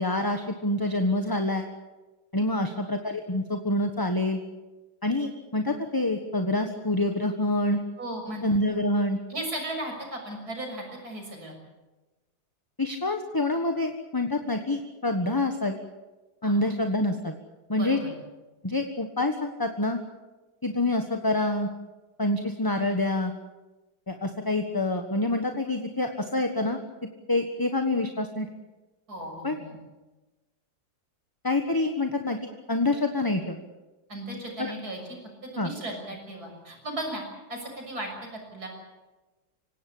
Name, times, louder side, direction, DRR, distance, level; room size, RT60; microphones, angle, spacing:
voice 1, 0.0-1.7 2.3-4.4 5.0-7.8 8.4-9.2 12.8-15.8 16.4-17.4 17.7-18.0 18.6-20.0 20.6-21.7 22.2-23.3 24.1-26.8 27.3-28.5 29.4-29.6 31.4-33.6 34.6-34.7 35.6-35.7, left 2 dB, 15° left, 5 dB, 1.2 m, -26 dB
voice 2, 8.0-8.6 9.3-11.6 16.4-16.6 17.7-18.1 29.1-29.8 34.1-35.0 35.5-37.2 37.5-38.7, right 1 dB, 50° right, 2 dB, 7.0 m, -36 dB
25.5 x 17.5 x 8.6 m, 1.1 s
omnidirectional pair, 2.0 m